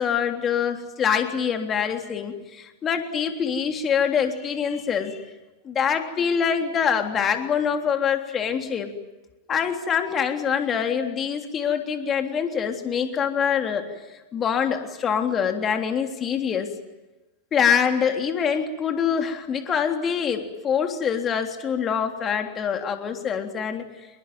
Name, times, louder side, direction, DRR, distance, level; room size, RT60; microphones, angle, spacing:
voice 1, 0.0-5.2 5.6-8.9 9.5-13.9 14.3-16.7 17.5-23.9, left 7 dB, 25° left, 5 dB, 3.4 m, -25 dB
26.5 x 22.0 x 9.3 m, 1.1 s
figure-of-eight pair, 90°, 0 cm